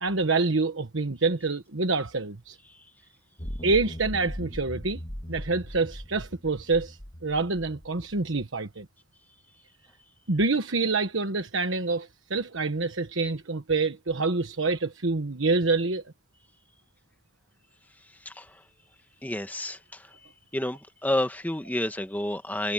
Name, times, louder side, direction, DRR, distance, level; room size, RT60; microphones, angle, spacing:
voice 1, 0.0-2.6 3.6-5.0 5.3-8.9 10.3-16.0, right 3 dB, 80° right, 1.3 m, -27 dB
sound 1, 3.4-8.4, equal, 30° left, 2.4 m, -39 dB
voice 2, 18.3-18.6 19.2-20.2 20.5-22.7, left 1 dB, 10° left, 1.6 m, -30 dB
head